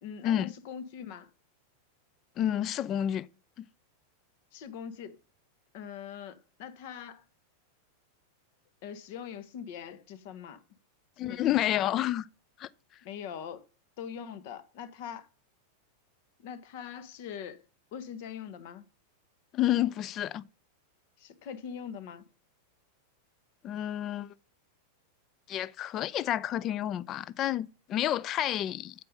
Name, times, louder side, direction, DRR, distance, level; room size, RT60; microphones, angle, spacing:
voice 1, 0.0-1.3 4.5-5.2 5.7-7.2 8.8-10.6 11.2-11.8 13.0-13.6 14.0-15.3 16.4-17.6 17.9-18.8 21.2-22.2, left 8 dB, 50° left, 1.1 m, -42 dB
voice 2, 2.4-3.3 3.6-3.7 11.2-12.3 12.6-12.7 19.5-20.4 23.6-24.3 25.5-28.9, left 12 dB, 35° left, 0.4 m, -29 dB
8.0 x 6.8 x 5.4 m
figure-of-eight pair, 90°, 0 cm